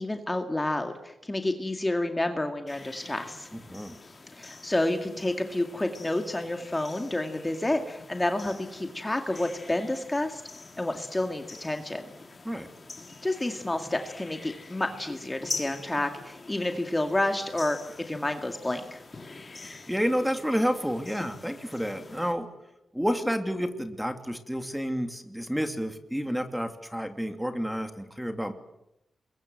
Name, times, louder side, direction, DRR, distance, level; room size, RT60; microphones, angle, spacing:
voice 1, 0.0-3.5 4.3-10.4 10.8-12.1 13.2-19.0, left 1 dB, 15° left, 5 dB, 2.1 m, -29 dB
sound 1, 2.7-22.3, left 3 dB, 35° left, 3.4 m, -45 dB
voice 2, 3.5-4.0 12.4-12.7 19.6-22.5 22.9-28.5, equal, 5° right, 7 dB, 2.5 m, -30 dB
27.5 x 22.5 x 7.9 m, 0.86 s
wide cardioid pair, 95°, 0 cm